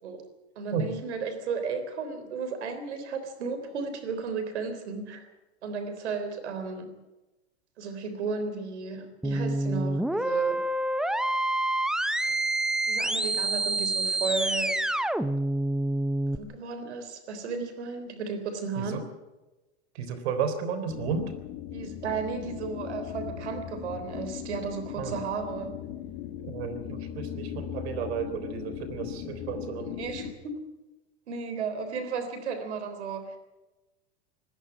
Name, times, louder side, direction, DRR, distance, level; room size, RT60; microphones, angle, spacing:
voice 1, 0.6-5.3 5.6-6.9 7.8-10.6 12.3-12.4 12.9-14.8 16.3-19.0 21.7-25.7 30.0-30.6 31.3-33.4, right 5 dB, 90° right, 8 dB, 3.8 m, -34 dB
sound 1, 9.2-16.4, right 1 dB, ahead, 0.6 m, -27 dB
voice 2, 19.9-21.3 25.0-25.2 26.4-29.9, right 6 dB, 70° right, 10 dB, 3.7 m, -33 dB
sound 2, 20.9-30.3, left 10 dB, 55° left, 2.3 m, -38 dB
20.0 x 15.0 x 9.2 m, 1.1 s
supercardioid pair, 130°, 33 cm